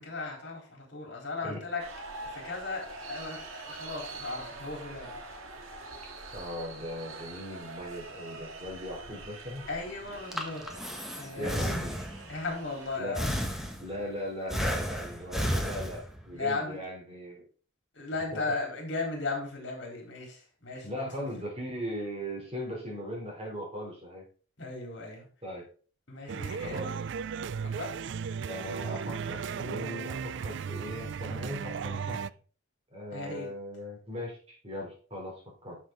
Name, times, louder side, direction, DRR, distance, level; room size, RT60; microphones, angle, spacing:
voice 1, 0.0-1.8 2.2-5.2 9.7-10.7 11.2-11.7 12.3-13.7 16.3-16.8 17.9-21.3 24.6-25.3 26.1-27.0 27.8-27.9 33.1-33.5, left 3 dB, 55° left, 0 dB, 3.9 m, -36 dB
sound 1, 1.8-13.0, right 3 dB, 85° right, 1.9 m, -44 dB
voice 2, 6.3-9.7 11.4-11.9 13.0-13.2 13.8-17.5 18.3-18.4 20.8-24.3 25.4-25.6 26.6-26.9 28.5-32.4 32.9-35.8, equal, 30° right, -1 dB, 3.6 m, -38 dB
Breathing, 10.1-12.4 13.2-14.1 14.5-16.3, equal, ahead, 1.2 m, -33 dB
sound 2, 26.3-32.3, right 6 dB, 60° right, 0.3 m, -35 dB
11.5 x 6.2 x 3.9 m, 0.41 s
head